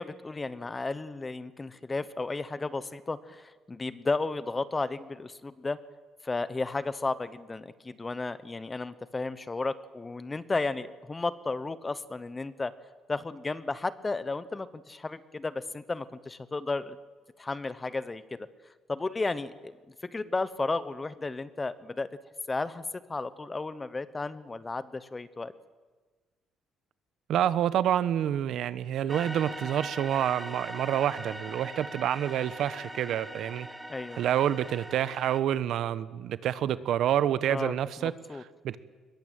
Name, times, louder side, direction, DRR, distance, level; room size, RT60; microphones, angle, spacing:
voice 1, 0.0-5.8 6.2-12.7 13.1-17.0 17.4-18.4 18.9-22.1 22.5-22.8 23.1-25.5 33.9-34.2 37.5-37.7 38.0-38.4, left 3 dB, 15° left, 15 dB, 0.9 m, -33 dB
voice 2, 27.3-33.7 34.2-38.1 38.6-38.8, right 10 dB, 65° right, 15 dB, 1.0 m, -28 dB
sound 1, 29.1-35.4, right 1 dB, 5° right, 1.5 m, -41 dB
22.5 x 21.5 x 9.0 m, 1.3 s
cardioid pair, 150°, 0 cm